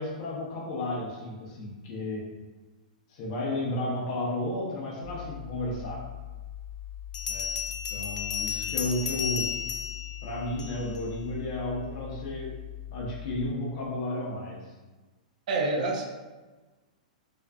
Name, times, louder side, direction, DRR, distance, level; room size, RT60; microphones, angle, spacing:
voice 1, 0.0-2.3 3.1-6.1 7.3-7.5 7.9-9.6 10.2-12.5 12.9-14.7, left 1 dB, 45° left, -4 dB, 0.7 m, -33 dB
sound 1, 5.0-13.5, left 11 dB, 20° right, 0.7 m, -41 dB
Bell, 7.1-11.0, left 7 dB, 70° left, 0.3 m, -33 dB
voice 2, 15.5-16.0, right 2 dB, 65° right, 1 dB, 0.5 m, -27 dB
2.5 x 2.4 x 2.2 m, 1.2 s
hypercardioid pair, 135°, 4 cm